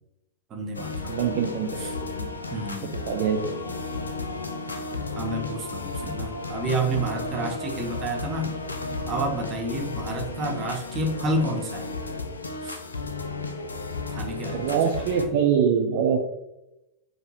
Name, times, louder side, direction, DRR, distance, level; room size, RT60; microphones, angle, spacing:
voice 1, 0.5-1.2 1.8-1.9 2.5-3.0 5.2-8.5 9.1-11.9 12.6-12.8 14.1-14.8, right 1 dB, 30° right, 2 dB, 0.9 m, -29 dB
sound 1, 0.7-15.3, left 3 dB, 75° left, 0.4 m, -33 dB
voice 2, 1.1-2.4 2.9-3.5 4.9-5.0 14.5-16.2, right 7 dB, 50° right, 3 dB, 0.4 m, -24 dB
4.5 x 2.6 x 3.9 m, 0.90 s
figure-of-eight pair, 90°, 0 cm